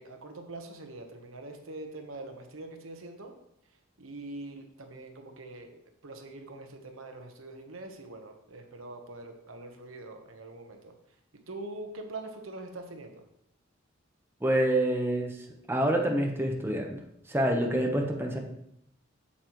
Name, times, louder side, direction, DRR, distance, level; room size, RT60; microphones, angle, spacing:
voice 1, 0.0-3.3 4.0-5.7 6.0-10.9 11.5-13.2, right 2 dB, 90° right, 5 dB, 1.1 m, -43 dB
voice 2, 14.4-15.3 15.7-17.0 17.3-18.4, right 1 dB, 10° right, 1 dB, 1.0 m, -27 dB
8.4 x 7.3 x 3.1 m, 0.75 s
head